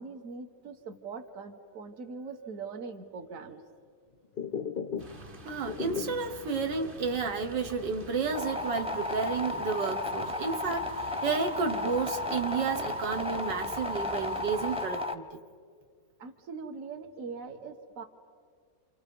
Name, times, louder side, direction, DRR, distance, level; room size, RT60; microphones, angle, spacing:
voice 1, 0.0-3.6 16.2-18.0, right 4 dB, 50° right, 5 dB, 1.6 m, -42 dB
sound 1, 4.2-5.3 5.5-6.4 6.8-6.9 7.3-7.4 7.9-9.3 9.6-10.3, left 6 dB, 55° left, 0.5 m, -37 dB
sound 2, 5.0-14.9, equal, 30° right, 1.4 m, -47 dB
voice 2, 5.4-15.3, right 5 dB, 80° right, 4 dB, 1.9 m, -31 dB
sound 3, 8.3-15.1, left 2 dB, 5° right, 0.7 m, -34 dB
28.0 x 28.0 x 5.4 m, 2.1 s
omnidirectional pair, 1.9 m